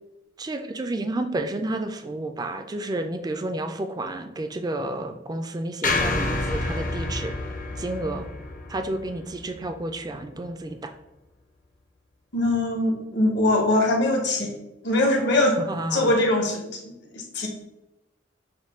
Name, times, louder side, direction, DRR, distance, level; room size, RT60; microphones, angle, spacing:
voice 1, 0.4-7.3 7.8-8.3 8.7-10.9 15.7-16.1, right 2 dB, 20° right, 7 dB, 0.3 m, -30 dB
sound 1, 5.8-10.1, left 2 dB, 45° left, 0.6 m, -29 dB
voice 2, 12.3-14.5 14.8-16.8 17.1-17.5, left 1 dB, 65° left, 1 dB, 1.0 m, -22 dB
6.4 x 2.2 x 3.5 m, 0.95 s
head